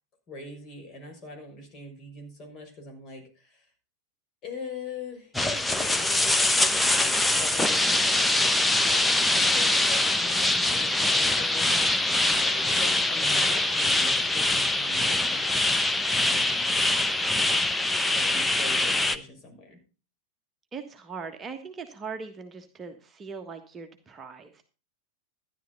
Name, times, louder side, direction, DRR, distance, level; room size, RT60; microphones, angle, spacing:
voice 1, 0.3-3.6 4.4-15.5 16.1-16.7 17.4-17.7 18.1-19.8, left 3 dB, 30° left, 4 dB, 6.1 m, -42 dB
sound 1, 5.3-19.2, left 2 dB, 5° left, 1.0 m, -23 dB
voice 2, 20.7-24.7, right 5 dB, 20° right, 5 dB, 1.4 m, -40 dB
13.5 x 11.0 x 4.0 m, 0.33 s
figure-of-eight pair, 90°, 0 cm